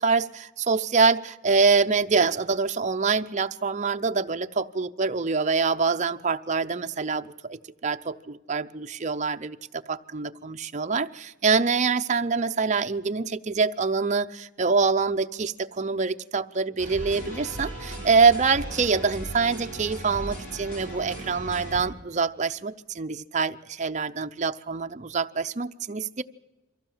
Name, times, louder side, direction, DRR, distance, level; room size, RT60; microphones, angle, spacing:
voice 1, 0.0-26.2, right 4 dB, 35° right, 8 dB, 0.6 m, -25 dB
sound 1, 16.8-21.8, right 1 dB, 40° left, 6.7 m, -37 dB
23.5 x 15.0 x 7.3 m, 1.1 s
head